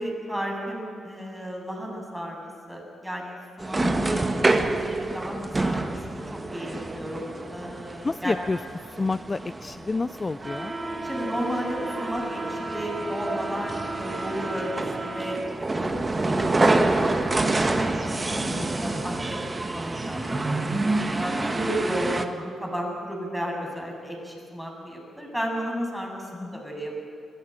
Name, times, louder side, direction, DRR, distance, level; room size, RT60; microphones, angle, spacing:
voice 1, 0.0-4.3 4.6-6.2 6.5-8.4 11.0-16.0 16.2-27.0, equal, 5° right, 0 dB, 7.5 m, -34 dB
sound 1, 3.6-22.3, right 2 dB, 30° right, 1.6 m, -27 dB
voice 2, 3.7-4.2 8.0-8.6 9.0-10.7 18.5-19.0 26.4-26.5, left 3 dB, 30° left, 16 dB, 0.4 m, -29 dB
23.0 x 15.5 x 9.1 m, 2.4 s
hypercardioid pair, 40°, 0 cm